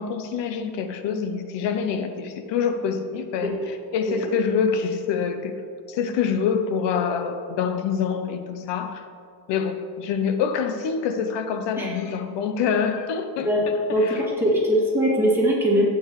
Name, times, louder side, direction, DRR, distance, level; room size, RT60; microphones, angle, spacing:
voice 1, 0.0-5.5 5.9-9.0 9.5-14.3, left 6 dB, 85° left, 7 dB, 0.9 m, -26 dB
voice 2, 13.9-15.9, equal, 5° right, -6 dB, 2.4 m, -21 dB
12.0 x 8.9 x 3.2 m, 2.2 s
cardioid pair, 160°, 42 cm